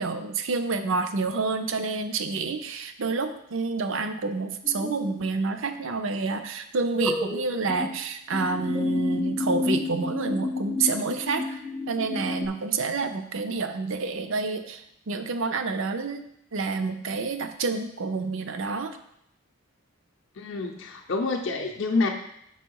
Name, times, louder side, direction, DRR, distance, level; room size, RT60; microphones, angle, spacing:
voice 1, 0.0-16.2 16.5-19.0, right 4 dB, 65° right, 9 dB, 0.5 m, -28 dB
sound 1, 4.6-5.2 6.9-7.9 8.3-12.5, left 2 dB, ahead, 0.4 m, -30 dB
voice 2, 20.4-22.1, left 3 dB, 60° left, 2 dB, 0.5 m, -27 dB
5.5 x 4.6 x 4.6 m, 0.75 s
head